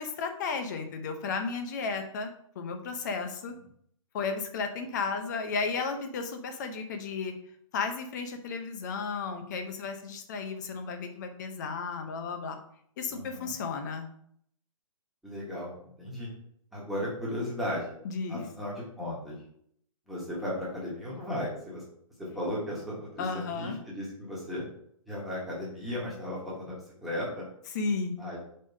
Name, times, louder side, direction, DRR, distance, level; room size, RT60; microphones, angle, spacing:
voice 1, 0.0-3.6 4.1-7.3 7.7-12.6 13.0-14.1 18.0-18.5 23.2-23.8 27.7-28.2, left 4 dB, 35° left, 7 dB, 0.8 m, -33 dB
voice 2, 13.1-13.5 15.2-16.3 16.7-17.9 18.3-19.4 20.1-21.8 22.3-24.6 25.1-26.8 27.0-27.5 28.2-28.4, left 1 dB, ahead, -8 dB, 1.4 m, -35 dB
5.3 x 3.6 x 5.4 m, 0.67 s
hypercardioid pair, 160°, 18 cm